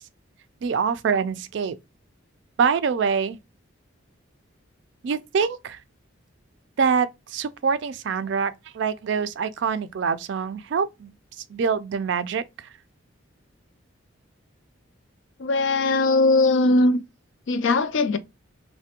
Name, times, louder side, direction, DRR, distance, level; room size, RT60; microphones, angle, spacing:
voice 1, 0.6-1.8 2.6-3.4 5.0-5.8 6.8-11.1 11.5-12.7, right 6 dB, 60° right, 0.3 m, -25 dB
voice 2, 15.4-17.0 17.5-18.2, left 2 dB, 70° left, 0.4 m, -20 dB
3.3 x 2.1 x 2.8 m
head